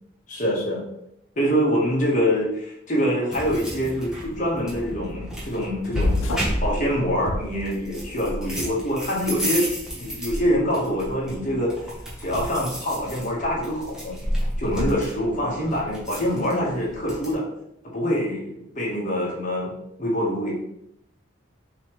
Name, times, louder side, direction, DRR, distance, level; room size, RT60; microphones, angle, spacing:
voice 1, 0.3-0.8 1.4-6.2 6.6-9.7 9.9-11.7 12.2-14.2 14.6-17.5 17.8-19.7 20.0-20.5, equal, 40° left, -4 dB, 1.3 m, -25 dB
sound 1, 3.3-17.3, equal, 5° right, 1.0 m, -32 dB
sound 2, 5.9-6.7 7.2-8.1, left 2 dB, 85° left, 0.7 m, -26 dB
5.5 x 3.0 x 3.1 m, 0.78 s
head